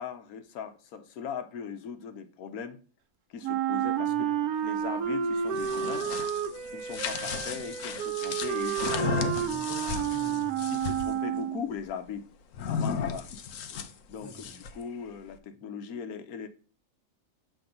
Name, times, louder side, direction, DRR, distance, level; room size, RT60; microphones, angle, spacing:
voice 1, 0.0-2.8 3.3-4.3 4.6-6.1 6.7-9.6 10.7-12.3 12.7-13.3 14.1-16.5, left 7 dB, 90° left, 1.2 m, -39 dB
Wind instrument woodwind instrument, 3.4-11.7, right 9 dB, 90° right, 1.2 m, -30 dB
voice 2, 4.1-4.5 9.5-10.7 14.2-14.6, equal, 20° right, 0.4 m, -47 dB
sound 1, 5.4-11.1 12.5-14.8, left 6 dB, 65° left, 1.0 m, -34 dB
7.2 x 3.4 x 5.2 m
omnidirectional pair, 1.5 m